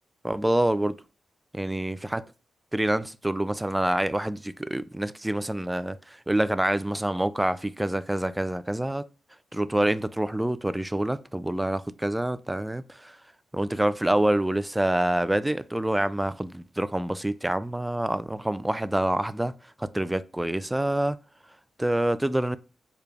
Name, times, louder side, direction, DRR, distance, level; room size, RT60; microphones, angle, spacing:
voice 1, 0.2-1.0 1.5-2.2 2.7-6.0 6.3-9.0 9.5-13.2 13.5-19.5 19.8-21.2 21.8-22.6, right 1 dB, 10° right, 0.3 m, -26 dB
4.7 x 2.2 x 3.2 m
supercardioid pair, 45°, 0 cm